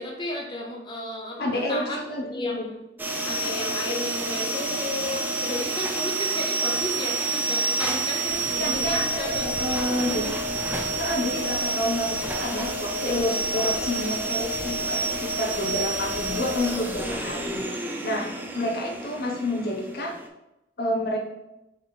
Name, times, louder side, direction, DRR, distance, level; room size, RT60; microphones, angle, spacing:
voice 1, 0.0-2.0 2.3-2.8 3.3-10.3 17.9-18.7, left 1 dB, 25° left, -1 dB, 0.8 m, -34 dB
voice 2, 1.4-2.7 8.6-10.3 11.0-20.2 20.8-21.2, left 1 dB, 60° left, 0 dB, 0.6 m, -29 dB
sound 1, 3.0-20.3, right 2 dB, 10° right, 0.4 m, -29 dB
sound 2, 8.2-17.6, equal, 80° left, 1.1 m, -44 dB
4.1 x 3.0 x 4.3 m, 0.93 s
head